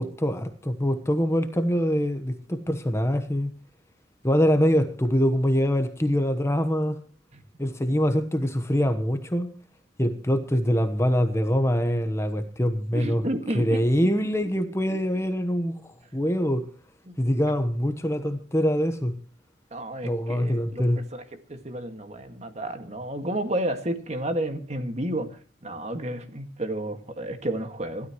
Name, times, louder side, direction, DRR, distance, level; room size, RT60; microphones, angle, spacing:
voice 1, 0.0-3.5 4.2-7.0 7.6-9.5 10.0-13.2 13.5-15.8 16.1-16.6 17.2-19.1 20.0-21.0, equal, 15° left, 1.1 m, -24 dB
voice 2, 12.9-13.8 17.1-17.2 19.7-20.9 21.1-21.2 21.5-28.1, right 1 dB, 40° right, 2.0 m, -31 dB
26.5 x 13.0 x 3.1 m
head